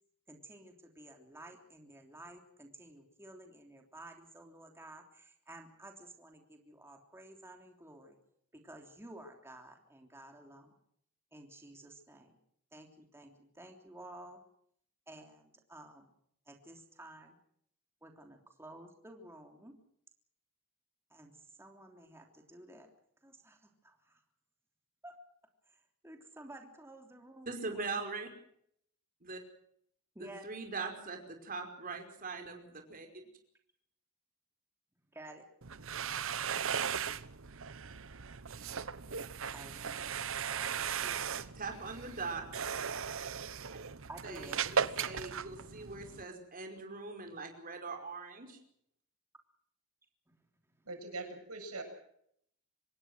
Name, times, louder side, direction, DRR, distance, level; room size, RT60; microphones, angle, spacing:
voice 1, 0.3-8.2 8.5-10.7 11.3-12.4 12.7-14.4 15.1-16.1 16.4-17.4 18.0-19.7 21.1-22.9 23.2-24.2 25.0-25.2 25.7-28.0 30.1-30.4 35.1-35.4 39.5-40.2 40.5-41.4 44.1-44.6 50.3-50.4 50.8-50.9, right 1 dB, 10° right, 3 dB, 3.3 m, -53 dB
voice 2, 27.5-28.3 29.2-29.4 30.2-33.1 41.3-42.4 44.2-48.6, right 4 dB, 40° right, 4 dB, 5.2 m, -41 dB
sound 1, 35.6-46.2, right 7 dB, 65° right, 1.1 m, -37 dB
voice 3, 50.9-51.8, right 3 dB, 85° right, 6 dB, 7.8 m, -42 dB
26.0 x 21.0 x 6.3 m, 0.68 s
head